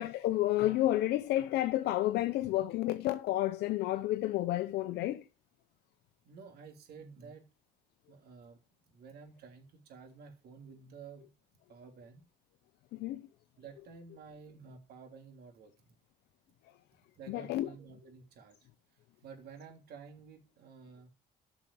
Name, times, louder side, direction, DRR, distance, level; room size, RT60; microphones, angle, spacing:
voice 1, 0.0-5.2 12.9-13.3 17.3-17.7, left 15 dB, 80° left, 0.8 m, -30 dB
voice 2, 6.2-7.5 8.1-8.6 8.9-11.3 11.7-12.2 13.6-15.7 17.1-21.1, right 5 dB, 70° right, 3.2 m, -52 dB
8.9 x 6.2 x 6.9 m
cardioid pair, 110°, 17 cm